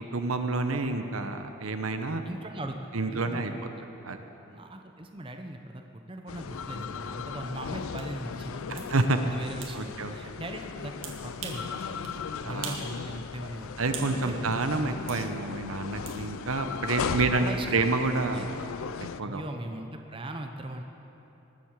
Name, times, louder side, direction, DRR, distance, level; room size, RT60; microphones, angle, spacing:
voice 1, 0.1-2.2 2.9-3.5 4.0-4.2 8.7-9.2 9.7-10.1 12.4-12.8 13.8-17.5 17.7-18.5 19.2-19.4, right 3 dB, 85° right, 7 dB, 1.0 m, -28 dB
voice 2, 2.2-3.5 3.7-3.8 4.5-8.9 9.2-11.0 11.2-13.8 14.2-14.4 17.2-17.9 18.3-18.5 19.2-20.8, right 1 dB, 25° right, 4 dB, 0.8 m, -39 dB
sound 1, 6.3-19.2, left 6 dB, 80° left, 0.4 m, -37 dB
sound 2, 8.0-8.1 8.8-8.9 9.6-9.8 11.0-11.7 12.0-12.2 12.6-12.9 13.2-14.2 15.1-15.2 16.1-16.2, right 6 dB, 65° right, 1.9 m, -40 dB
19.5 x 8.0 x 7.3 m, 2.9 s
head